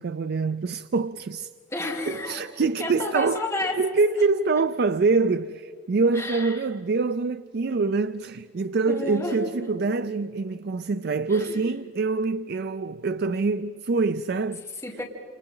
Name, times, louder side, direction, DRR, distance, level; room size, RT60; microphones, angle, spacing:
voice 1, 0.0-1.5 2.1-3.4 3.8-14.6, right 4 dB, 55° right, 0.4 m, -25 dB
voice 2, 1.7-2.5 2.8-3.8 6.1-6.6 8.9-9.4 11.3-11.6 14.8-15.0, left 2 dB, 15° left, 3.4 m, -31 dB
30.0 x 29.5 x 3.9 m
head